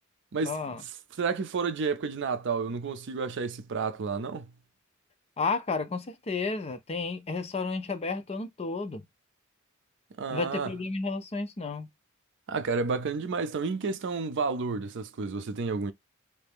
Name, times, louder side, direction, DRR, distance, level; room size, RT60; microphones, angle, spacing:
voice 1, 0.4-0.8 5.4-9.0 10.3-11.9, left 4 dB, 30° left, 0.5 m, -32 dB
voice 2, 1.2-4.5 10.2-10.7 12.5-15.9, right 4 dB, 60° right, 0.5 m, -30 dB
3.3 x 2.7 x 3.4 m
head